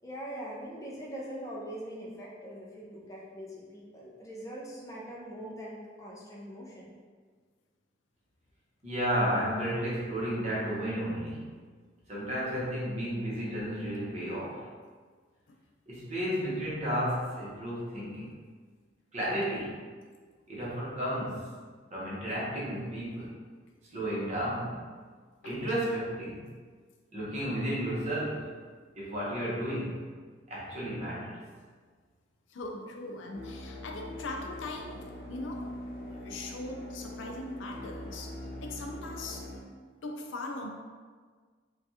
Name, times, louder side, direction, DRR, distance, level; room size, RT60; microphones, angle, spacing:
voice 1, 0.0-6.9, equal, 15° left, -4 dB, 0.5 m, -42 dB
voice 2, 8.8-11.4 12.1-14.7 15.9-18.4 19.1-19.8 20.5-21.5 21.9-23.4 23.9-24.9 25.4-26.5 27.1-28.5 28.9-30.0 30.5-31.4, equal, 40° right, -7 dB, 0.9 m, -32 dB
voice 3, 25.4-25.8 32.5-35.7 36.1-39.5 40.0-40.7, left 2 dB, 90° left, 1 dB, 0.4 m, -41 dB
sound 1, 33.3-39.6, left 1 dB, 50° left, 0.8 m, -42 dB
3.3 x 2.3 x 2.7 m, 1.6 s
head